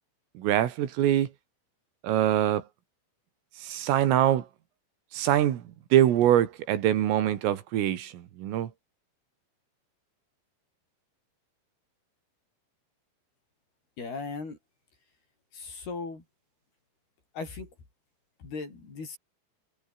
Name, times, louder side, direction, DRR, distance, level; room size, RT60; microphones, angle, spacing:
voice 1, 0.4-1.3 2.0-2.6 3.6-4.5 5.1-5.6 5.9-8.7, right 12 dB, 80° right, 4.8 m, -24 dB
voice 2, 14.0-14.6 15.5-16.2 17.3-17.7 18.4-19.2, left 4 dB, 50° left, 9.3 m, -37 dB
omnidirectional pair, 5.8 m